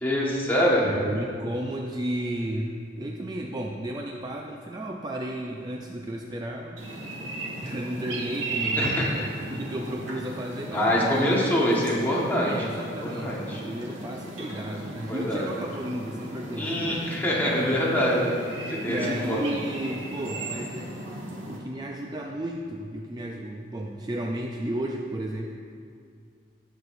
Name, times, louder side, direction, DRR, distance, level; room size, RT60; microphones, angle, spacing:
voice 1, 0.0-0.8 8.7-9.3 10.7-12.5 13.0-13.6 15.1-15.5 16.6-18.3 18.7-19.0 19.3-19.4, equal, 10° left, -5 dB, 1.5 m, -24 dB
voice 2, 0.8-7.3 7.6-11.2 11.5-11.8 12.4-17.1 17.7-18.2 18.9-20.9 21.5-25.5, right 1 dB, 20° right, 1 dB, 0.4 m, -33 dB
sound 1, 6.8-21.6, right 2 dB, 90° right, 1.7 m, -36 dB
18.0 x 6.5 x 2.6 m, 2.3 s
head